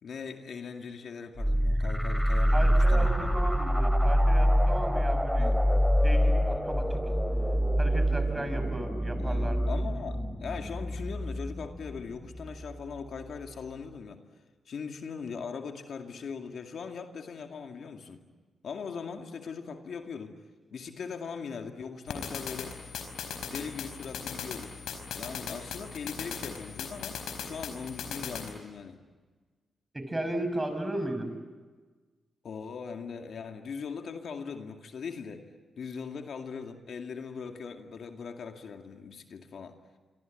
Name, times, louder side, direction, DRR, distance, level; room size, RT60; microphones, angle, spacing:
voice 1, 0.0-3.3 5.4-5.6 9.2-14.2 14.7-18.2 18.6-20.4 20.7-22.8 23.5-24.7 25.1-29.0 32.4-35.5 35.8-39.8, left 5 dB, 70° left, 4 dB, 2.2 m, -40 dB
sound 1, 1.4-12.7, equal, ahead, 2.4 m, -26 dB
voice 2, 2.5-5.6 6.0-7.0 7.8-9.6 29.9-31.3, right 1 dB, 20° right, 8 dB, 6.1 m, -35 dB
sound 2, 22.1-28.5, left 6 dB, 85° left, 4.6 m, -39 dB
26.5 x 24.0 x 9.1 m, 1.4 s
cardioid pair, 65°, 0 cm